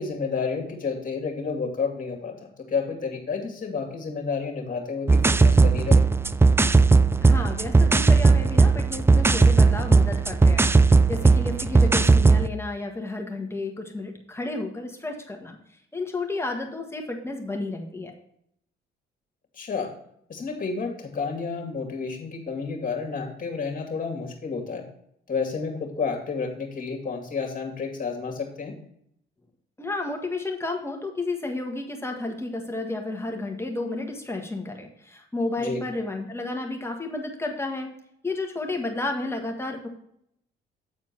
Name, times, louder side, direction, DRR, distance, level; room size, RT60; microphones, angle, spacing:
voice 1, 0.0-6.0 19.6-19.9 20.3-24.8 25.3-28.7 35.6-35.8, left 5 dB, 45° left, 3 dB, 2.4 m, -30 dB
sound 1, 5.1-12.5, right 3 dB, 10° right, 0.3 m, -17 dB
voice 2, 7.2-15.6 15.9-18.1 29.8-37.9 38.2-39.9, left 2 dB, 15° left, 2 dB, 1.6 m, -32 dB
9.0 x 4.4 x 5.8 m, 0.71 s
cardioid pair, 90°, 20 cm